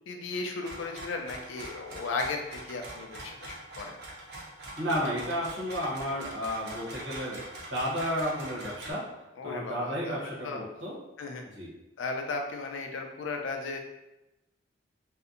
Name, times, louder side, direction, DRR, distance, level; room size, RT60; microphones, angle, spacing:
voice 1, 0.1-4.0 9.4-10.6 11.2-11.4 12.0-13.8, left 3 dB, 85° left, 3 dB, 0.4 m, -35 dB
sound 1, 0.6-8.9, right 1 dB, 55° right, 0.6 m, -43 dB
voice 2, 4.8-7.4 7.7-9.1 9.4-10.9 11.5-11.7, equal, 80° right, -6 dB, 1.0 m, -32 dB
2.7 x 2.1 x 2.5 m, 0.94 s
head